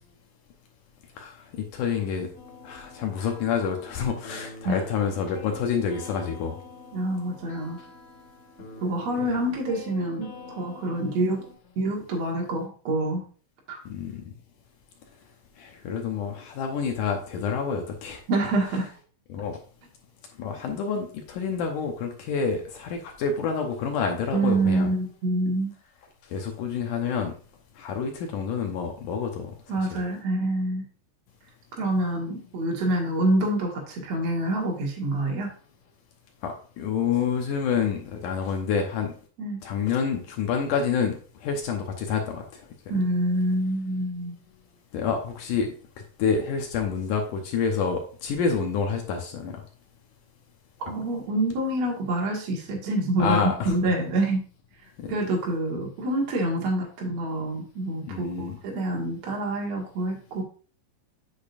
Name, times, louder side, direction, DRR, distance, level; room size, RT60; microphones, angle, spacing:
voice 1, 1.2-2.3 2.6-6.6 13.9-14.3 15.6-18.2 19.3-19.6 20.4-24.9 26.3-27.3 27.8-29.5 29.9-30.0 36.4-39.1 39.6-41.2 41.4-42.6 44.9-45.7 46.2-49.5 53.2-53.7 55.0-55.1 58.1-58.6, left 6 dB, 80° left, 3 dB, 1.8 m, -28 dB
sound 1, 2.3-11.5, left 3 dB, 35° left, 2.5 m, -45 dB
voice 2, 6.9-7.8 8.8-11.4 11.8-13.2 13.7-13.8 18.3-18.9 24.3-25.7 29.7-30.8 31.7-35.5 39.4-39.6 42.9-44.4 50.8-53.4 53.7-54.4 55.1-60.4, right 1 dB, 50° right, -2 dB, 2.1 m, -26 dB
8.5 x 6.8 x 2.5 m, 0.40 s
omnidirectional pair, 5.0 m